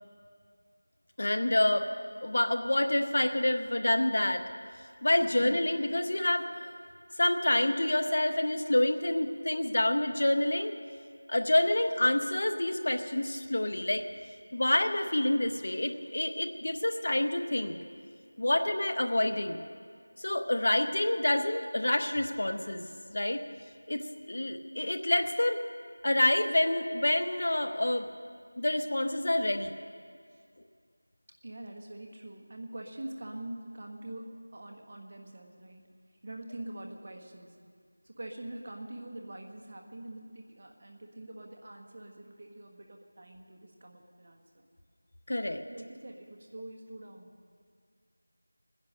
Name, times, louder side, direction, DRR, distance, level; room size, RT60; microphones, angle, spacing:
voice 1, 1.2-1.9 2.2-4.5 5.0-6.5 7.2-10.7 11.3-14.0 14.5-17.8 18.4-19.6 20.2-22.8 23.1-23.4 23.9-25.6 26.0-28.1 28.6-29.8 45.3-45.6, left 1 dB, 55° left, 8 dB, 0.9 m, -27 dB
voice 2, 5.2-5.5 30.3-30.4 31.4-35.9 36.2-37.6 38.0-44.6 45.7-47.4, right 1 dB, 35° right, 2 dB, 1.5 m, -44 dB
19.5 x 10.5 x 6.5 m, 2.1 s
figure-of-eight pair, 175°, 0 cm